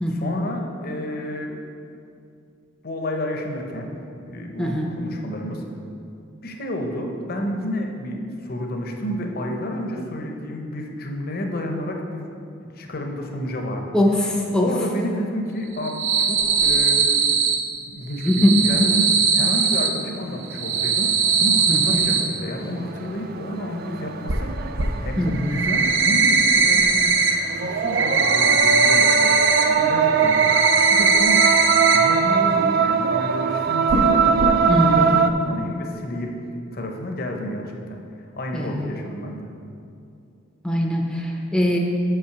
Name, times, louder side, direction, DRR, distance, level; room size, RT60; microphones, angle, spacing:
voice 1, 0.1-1.6 2.8-3.9 4.2-5.6 6.4-12.3 12.7-13.9 14.6-17.5 17.9-24.6 25.0-31.5 31.9-36.4 36.7-38.0 38.3-39.5, equal, 50° left, 3 dB, 0.8 m, -30 dB
voice 2, 13.9-14.7 18.2-18.6 21.7-21.8 25.2-25.6 34.7-35.1 38.5-38.9 40.6-41.8, left 1 dB, 5° left, 0 dB, 0.6 m, -21 dB
cicada slow, 15.7-17.6 18.1-19.9 20.4-22.2 24.3-24.4 24.8-24.9 25.3-27.3 27.6-29.6 30.0-32.0 32.3-32.4 32.8-32.9 33.9-34.1 34.4-34.5, right 5 dB, 70° right, 0.8 m, -19 dB
sound 1, 20.8-20.9 21.7-22.0 22.4-35.3, right 6 dB, 50° right, 0.3 m, -22 dB
5.7 x 5.4 x 6.7 m, 2.6 s
head